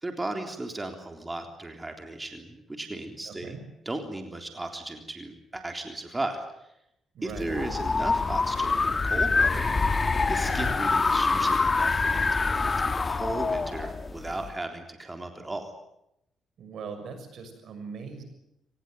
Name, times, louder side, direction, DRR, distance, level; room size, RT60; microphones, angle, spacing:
voice 1, 0.0-3.6 3.9-6.4 7.2-9.7 10.3-15.7, right 2 dB, 20° right, 4 dB, 3.6 m, -36 dB
voice 2, 3.3-3.6 7.1-7.7 10.4-10.8 16.6-18.2, right 5 dB, 70° right, 8 dB, 6.5 m, -40 dB
sound 1, 7.3-14.5, left 4 dB, 35° left, 1.6 m, -25 dB
24.5 x 19.5 x 9.3 m, 0.82 s
cardioid pair, 75°, 0 cm